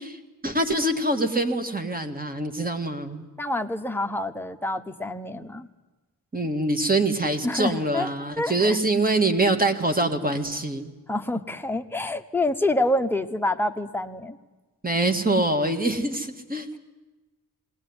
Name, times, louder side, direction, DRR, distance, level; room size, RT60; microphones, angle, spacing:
voice 1, 0.0-3.3 6.3-10.9 14.8-16.8, right 2 dB, 20° right, 8 dB, 2.0 m, -24 dB
voice 2, 3.4-5.7 7.4-8.1 8.4-8.8 11.1-14.4, left 1 dB, 5° left, 6 dB, 1.0 m, -27 dB
19.5 x 19.5 x 9.7 m, 1.2 s
wide cardioid pair, 110°, 38 cm